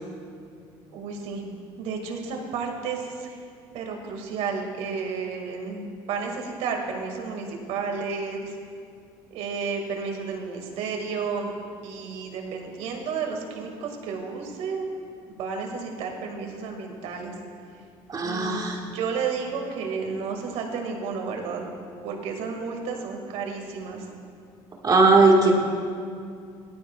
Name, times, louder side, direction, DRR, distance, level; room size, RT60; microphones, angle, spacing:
voice 1, 0.9-1.4 1.8-3.4 3.7-8.6 9.3-11.5 11.8-14.8 15.3-17.3 18.2-18.6 18.9-21.7 22.0-24.1, right 5 dB, 70° right, 2 dB, 1.9 m, -32 dB
voice 2, 18.1-18.8 24.8-25.5, right 3 dB, 35° right, -1 dB, 1.6 m, -18 dB
17.5 x 12.5 x 2.3 m, 2.3 s
supercardioid pair, 85°, 11 cm